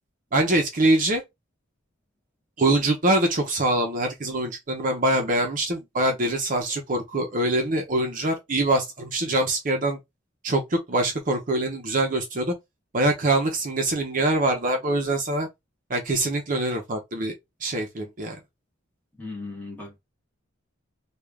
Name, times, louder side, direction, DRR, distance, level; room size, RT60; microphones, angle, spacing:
voice 1, 0.3-1.2 2.6-10.0 10.4-12.5 12.9-15.5 15.9-17.3 17.6-18.4, right 1 dB, 40° right, 0.7 m, -24 dB
voice 2, 19.2-20.0, left 3 dB, 10° left, 1.2 m, -37 dB
3.2 x 2.4 x 3.5 m
head